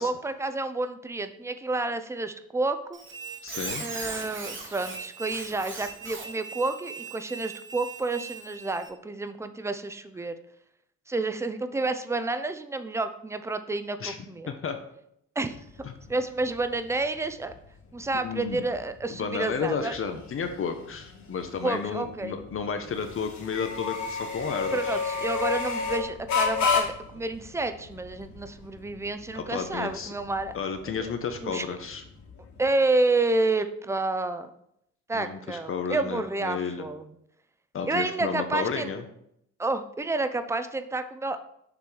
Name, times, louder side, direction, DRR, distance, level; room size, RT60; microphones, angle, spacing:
voice 1, 0.0-3.0 3.8-10.4 11.1-14.5 15.4-15.6 16.1-17.5 17.9-19.9 21.6-22.3 24.7-30.5 31.0-31.1 31.4-31.6 32.6-34.5 35.1-37.1 37.9-38.9 39.6-41.4, right 2 dB, 10° right, 10 dB, 0.5 m, -29 dB
Squeak, 2.9-8.9, right 4 dB, 40° right, 1.5 m, -39 dB
voice 2, 3.4-3.8 14.0-14.2 14.5-14.8 15.8-15.9 18.1-18.6 19.2-25.0 29.3-30.1 30.5-32.0 35.1-36.9 37.7-39.0, left 6 dB, 45° left, 6 dB, 0.7 m, -32 dB
sound 1, 15.5-32.7, left 5 dB, 65° left, 1.8 m, -33 dB
6.8 x 3.1 x 5.4 m, 0.75 s
cardioid pair, 90°, 30 cm